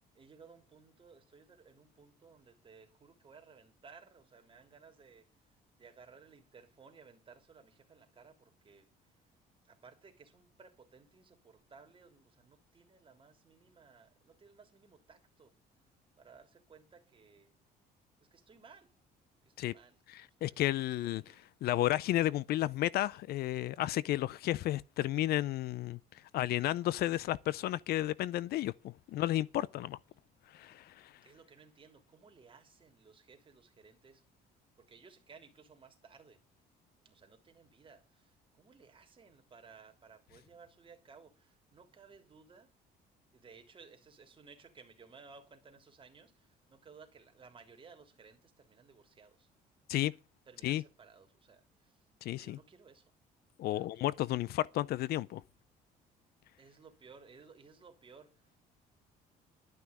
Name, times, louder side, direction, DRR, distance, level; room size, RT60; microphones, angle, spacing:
voice 1, 0.1-9.1 9.6-15.5 16.2-17.5 18.3-18.9 19.4-20.0 20.4-21.4 31.2-34.2 34.8-36.4 37.0-42.7 43.3-49.5 50.5-53.1 53.7-54.3 56.6-58.6, right 5 dB, 30° right, 3.2 m, -59 dB
voice 2, 20.1-21.2 21.6-26.0 26.3-30.0 30.5-31.1 49.9-50.1 50.6-50.8 52.2-52.6 53.6-55.4, left 14 dB, 70° left, 0.5 m, -32 dB
12.0 x 6.0 x 8.2 m
cardioid pair, 110°, 17 cm